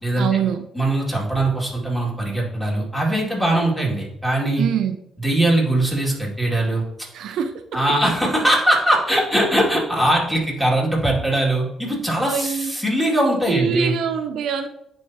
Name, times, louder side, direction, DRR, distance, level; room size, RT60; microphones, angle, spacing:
voice 1, 0.2-0.7 4.6-5.0 7.1-8.0 12.2-12.7 13.5-14.7, right 7 dB, 80° right, 8 dB, 0.4 m, -24 dB
voice 2, 0.7-4.7 5.2-6.8 7.7-14.0, right 1 dB, 5° left, -4 dB, 2.2 m, -21 dB
10.0 x 3.4 x 2.8 m, 0.80 s
cardioid pair, 90°, 0 cm